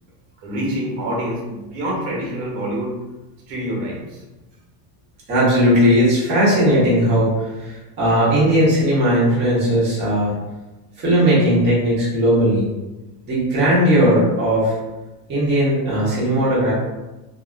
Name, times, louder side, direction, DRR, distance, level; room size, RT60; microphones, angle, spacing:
voice 1, 0.4-3.0 3.5-4.2 5.9-6.0, equal, 85° right, -3 dB, 1.2 m, -26 dB
voice 2, 5.3-10.4 11.0-12.7 13.3-14.8 15.3-16.7, equal, 25° right, -9 dB, 0.9 m, -17 dB
2.6 x 2.4 x 2.5 m, 1.1 s
cardioid pair, 170°, 46 cm